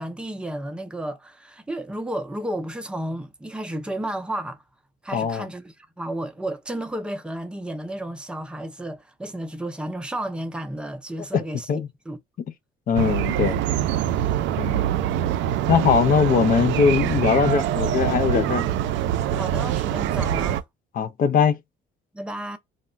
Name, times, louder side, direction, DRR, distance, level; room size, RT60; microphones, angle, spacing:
voice 1, 0.0-4.6 5.0-12.2 18.3-18.4 19.3-20.6 22.1-22.6, right 1 dB, 5° right, 0.5 m, -32 dB
voice 2, 5.1-5.5 11.3-11.4 11.7-11.9 12.9-13.6 14.6-14.9 15.7-18.6 21.0-21.6, left 6 dB, 50° left, 0.5 m, -21 dB
sound 1, 12.9-20.6, right 11 dB, 75° right, 0.4 m, -24 dB
2.3 x 2.1 x 3.8 m
cardioid pair, 95°, 19 cm